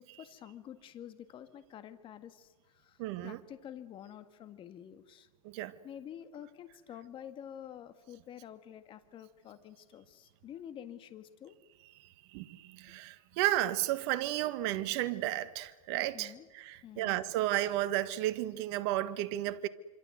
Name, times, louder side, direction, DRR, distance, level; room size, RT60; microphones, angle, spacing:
voice 1, 0.0-5.3 5.8-11.6 16.1-16.5 16.8-17.2, left 10 dB, 25° left, 1.8 m, -49 dB
voice 2, 3.0-3.4 5.4-5.7 12.3-19.7, right 14 dB, 50° right, 1.5 m, -33 dB
26.0 x 25.5 x 7.9 m
hypercardioid pair, 130°, 19 cm